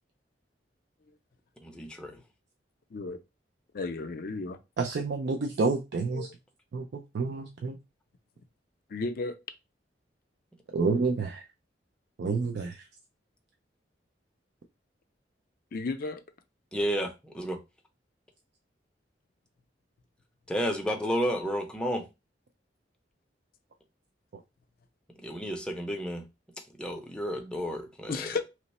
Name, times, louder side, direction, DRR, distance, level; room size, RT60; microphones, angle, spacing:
voice 1, 1.6-2.2 16.7-17.6 20.5-22.1 25.2-26.3 26.8-28.3, equal, 5° left, 0.5 m, -31 dB
voice 2, 3.7-4.6 6.1-6.3 8.9-9.4 15.7-16.2 28.1-28.4, left 3 dB, 55° left, 0.4 m, -33 dB
voice 3, 4.8-6.3 6.7-7.8 10.7-11.4 12.2-12.8, right 4 dB, 65° right, 0.4 m, -29 dB
3.0 x 2.0 x 4.1 m
head